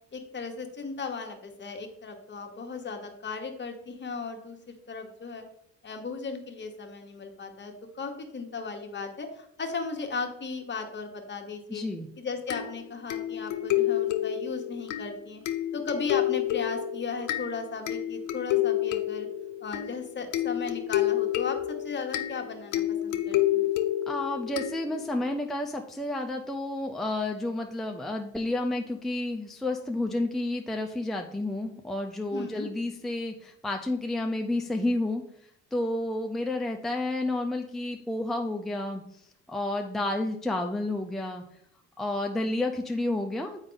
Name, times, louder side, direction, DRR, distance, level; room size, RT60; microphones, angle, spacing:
voice 1, 0.1-5.4 5.8-11.8 12.2-15.4 15.7-19.3 19.6-23.7 32.3-32.7, left 4 dB, 35° left, 4 dB, 1.2 m, -36 dB
voice 2, 11.7-12.1 24.1-35.2 35.7-39.0 39.5-41.4 42.0-43.7, left 2 dB, ahead, 2 dB, 0.5 m, -30 dB
sound 1, 12.5-25.3, left 13 dB, 80° left, 0.6 m, -29 dB
7.2 x 4.9 x 3.9 m, 0.72 s
cardioid pair, 90°, 30 cm